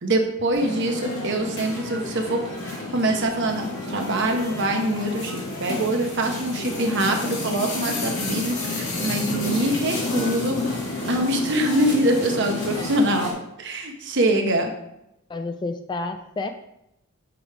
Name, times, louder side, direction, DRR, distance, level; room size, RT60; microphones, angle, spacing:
voice 1, 0.0-10.8 11.1-14.7, right 1 dB, 60° right, 3 dB, 0.9 m, -24 dB
sound 1, 0.5-13.3, left 2 dB, 60° left, 1.5 m, -30 dB
voice 2, 15.3-16.5, left 3 dB, 20° left, 7 dB, 0.3 m, -30 dB
6.1 x 4.7 x 3.4 m, 0.84 s
head